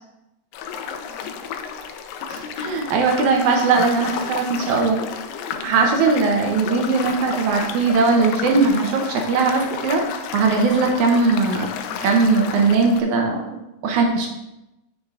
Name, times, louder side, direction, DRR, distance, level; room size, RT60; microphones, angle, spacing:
sound 1, 0.5-13.0, left 7 dB, 80° left, 2.2 m, -32 dB
voice 1, 2.3-5.0 5.6-11.7 12.0-14.3, right 4 dB, 75° right, 2 dB, 1.9 m, -19 dB
9.4 x 6.5 x 2.4 m, 0.92 s
omnidirectional pair, 4.1 m